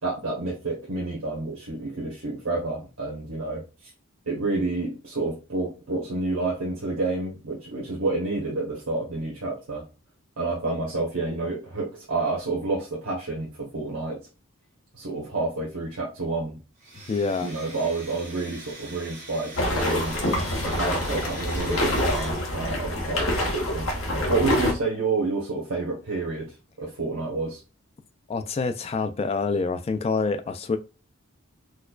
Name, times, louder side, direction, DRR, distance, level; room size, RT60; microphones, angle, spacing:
voice 1, 0.0-3.9 4.3-9.8 10.4-14.3 14.9-16.6 17.4-20.2 20.6-23.9 24.3-26.5 26.8-27.6, right 3 dB, 80° right, 0.9 m, -29 dB
Domestic sounds home sounds, 16.8-22.3, right 2 dB, 35° right, 1.7 m, -42 dB
voice 2, 17.1-17.5 28.3-30.8, left 4 dB, 30° left, 0.3 m, -26 dB
sound 1, 19.6-24.7, left 1 dB, 70° left, 1.0 m, -26 dB
4.3 x 2.3 x 2.3 m
head